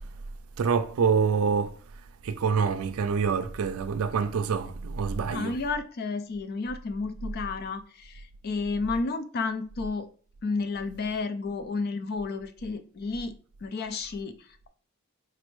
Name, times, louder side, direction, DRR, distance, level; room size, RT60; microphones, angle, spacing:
voice 1, 0.6-1.8 2.2-5.6, right 6 dB, 85° right, 0.4 m, -26 dB
voice 2, 5.3-10.1 10.4-13.3 13.6-14.7, left 4 dB, 50° left, 0.4 m, -32 dB
4.2 x 2.6 x 3.1 m
head